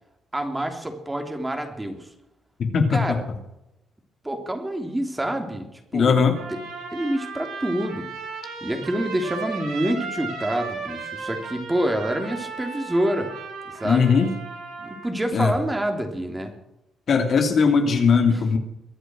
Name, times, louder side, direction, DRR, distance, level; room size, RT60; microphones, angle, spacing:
voice 1, 0.3-2.1 2.9-3.2 4.2-6.2 6.5-6.6 6.9-8.1 8.6-13.3 13.8-14.3 14.8-16.5 18.3-18.4, right 1 dB, 15° right, 5 dB, 3.2 m, -27 dB
voice 2, 2.6-3.0 5.9-6.3 13.8-14.3 15.3-15.5 17.1-18.6, left 5 dB, 55° left, 5 dB, 2.8 m, -19 dB
Trumpet, 6.3-15.1, right 4 dB, 80° right, 7.4 m, -35 dB
23.0 x 8.1 x 6.3 m, 0.88 s
cardioid pair, 90°, 0 cm